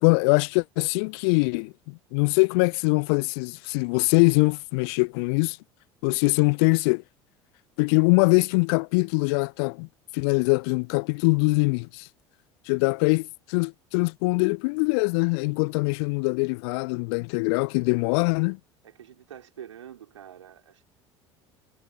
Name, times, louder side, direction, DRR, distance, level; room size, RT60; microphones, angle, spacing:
voice 1, 0.0-5.6 6.0-7.0 7.8-9.9 10.1-12.1 12.7-18.6, left 32 dB, 55° left, 0.5 m, -23 dB
voice 2, 18.8-20.8, right 10 dB, 75° right, 4.3 m, -46 dB
figure-of-eight pair, 70°, 16 cm